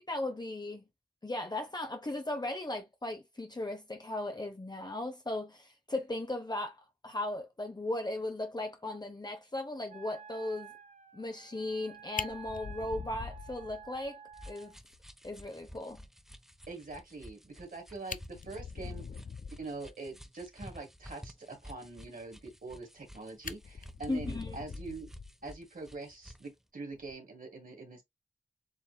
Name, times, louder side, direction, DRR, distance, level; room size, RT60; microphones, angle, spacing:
voice 1, 0.1-0.8 1.2-10.7 11.1-14.2 14.5-14.8 15.2-16.0 24.1-24.6, left 2 dB, 30° left, 0.8 m, -37 dB
Wind instrument woodwind instrument, 9.9-14.8, right 7 dB, 60° right, 0.7 m, -52 dB
Fire, 11.7-11.8 12.1-14.1 14.4-14.5 14.9-15.0 15.4-15.5 17.6-17.7 18.0-19.7 22.5-23.1 23.4-25.6 26.9-27.1, left 5 dB, 70° left, 0.4 m, -43 dB
sound 1, 14.3-26.5, equal, 5° right, 0.7 m, -52 dB
voice 2, 16.7-19.2 19.5-25.1 25.4-28.0, right 3 dB, 85° right, 1.8 m, -44 dB
7.2 x 2.6 x 2.3 m
wide cardioid pair, 60°, 14 cm